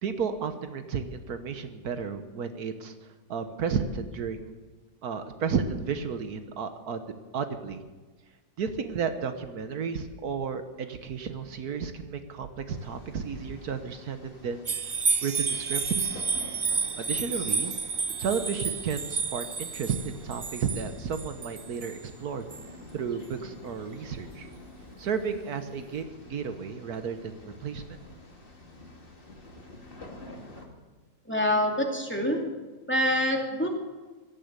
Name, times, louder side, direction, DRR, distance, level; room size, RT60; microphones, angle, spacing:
voice 1, 0.0-2.9 3.3-4.5 5.0-7.0 7.3-7.8 8.6-14.7 15.2-16.2 17.0-17.7 18.2-22.4 22.9-24.5 25.0-27.8, right 6 dB, 80° right, 9 dB, 1.6 m, -32 dB
sound 1, 12.7-30.7, left 2 dB, 35° left, 2.5 m, -49 dB
sound 2, 14.6-22.0 22.5-22.6, right 5 dB, 65° right, 0.3 m, -30 dB
voice 2, 31.3-32.4 32.9-33.7, equal, 5° left, 0 dB, 2.4 m, -25 dB
16.5 x 13.0 x 6.8 m, 1.2 s
omnidirectional pair, 1.6 m